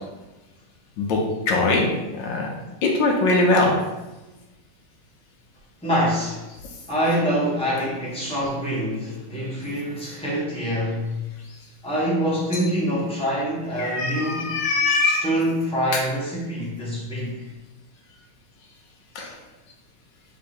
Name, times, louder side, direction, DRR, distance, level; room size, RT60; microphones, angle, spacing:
voice 1, 1.5-1.9 2.2-2.5 2.8-3.7 13.8-15.2 19.1-19.3, left 3 dB, 70° left, 0 dB, 1.2 m, -21 dB
voice 2, 5.8-6.5 6.9-11.1 11.8-14.6 15.0-17.4, equal, 5° left, -7 dB, 0.4 m, -25 dB
3.7 x 3.1 x 4.3 m, 1.1 s
omnidirectional pair, 2.4 m